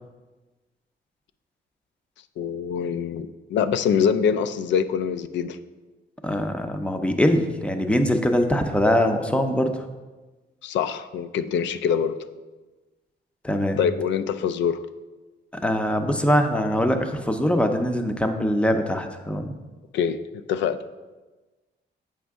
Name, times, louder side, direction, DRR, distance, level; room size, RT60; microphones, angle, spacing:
voice 1, 2.4-5.6 10.6-12.2 13.8-14.8 19.9-20.2 20.5-20.8, left 7 dB, 85° left, 12 dB, 0.4 m, -24 dB
voice 2, 6.2-9.8 13.4-13.8 15.6-19.6, equal, 5° left, 6 dB, 0.5 m, -22 dB
7.4 x 5.1 x 3.5 m, 1.2 s
cardioid pair, 155°, 18 cm